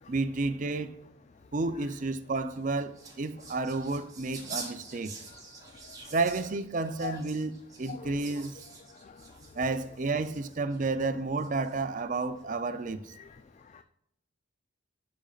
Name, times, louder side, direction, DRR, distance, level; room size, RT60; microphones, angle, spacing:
voice 1, 0.1-1.0 1.5-5.2 6.1-7.5 7.8-8.6 9.5-13.1, right 3 dB, 40° right, 0.5 m, -31 dB
sound 1, 2.4-10.8 11.4-12.0, right 4 dB, 15° right, 1.8 m, -47 dB
voice 2, 5.8-6.1 7.0-7.2 7.9-8.1 8.9-9.5 13.2-13.4 13.6-13.8, left 6 dB, 35° left, 0.3 m, -43 dB
12.0 x 5.2 x 2.4 m
head